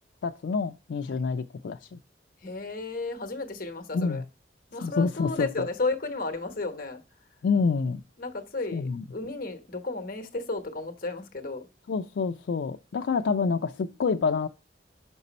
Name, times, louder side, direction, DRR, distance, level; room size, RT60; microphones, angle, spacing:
voice 1, 0.2-2.0 3.9-4.2 4.8-5.7 7.4-8.0 8.7-9.0 11.9-14.5, left 5 dB, 80° left, 0.4 m, -27 dB
voice 2, 2.4-4.2 4.7-7.0 8.2-11.7, left 3 dB, 50° left, 1.0 m, -33 dB
5.9 x 5.4 x 4.0 m
head